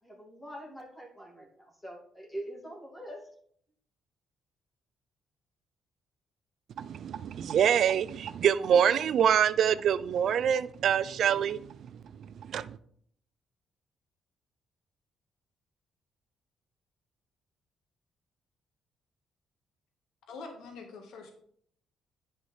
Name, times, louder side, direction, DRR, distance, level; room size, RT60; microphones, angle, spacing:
voice 1, 0.0-3.3, right 1 dB, 20° left, 2.4 m, -44 dB
voice 2, 6.8-11.6 12.5-12.8, right 8 dB, 65° right, 0.4 m, -25 dB
voice 3, 20.3-21.3, left 4 dB, 80° left, 1.5 m, -44 dB
9.5 x 5.5 x 3.3 m
cardioid pair, 90°, 0 cm